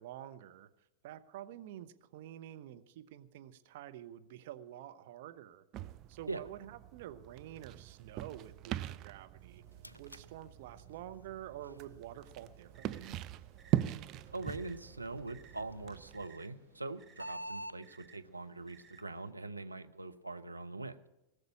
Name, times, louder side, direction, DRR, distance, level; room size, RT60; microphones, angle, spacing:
voice 1, 0.0-5.6 6.1-9.6 10.0-13.2, right 12 dB, 50° right, 8 dB, 0.9 m, -49 dB
sound 1, 5.7-16.3, right 13 dB, 35° right, 0.5 m, -41 dB
sound 2, 9.4-17.8, right 1 dB, 85° left, 0.4 m, -52 dB
sound 3, 12.2-19.3, right 7 dB, 20° right, 1.0 m, -63 dB
voice 2, 14.3-21.0, right 3 dB, 85° right, 7 dB, 0.8 m, -43 dB
19.0 x 6.6 x 8.6 m, 0.94 s
figure-of-eight pair, 90°, 0 cm